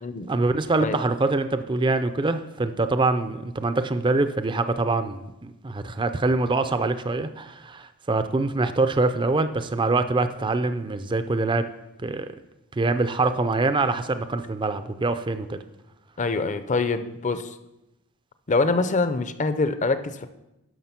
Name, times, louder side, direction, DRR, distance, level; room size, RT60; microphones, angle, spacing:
voice 1, 0.3-11.7 12.0-12.3 12.8-15.6, right 3 dB, 20° right, 10 dB, 0.4 m, -24 dB
voice 2, 16.2-17.6 18.5-20.3, left 3 dB, 35° left, 11 dB, 0.6 m, -24 dB
11.0 x 6.1 x 5.9 m, 0.93 s
head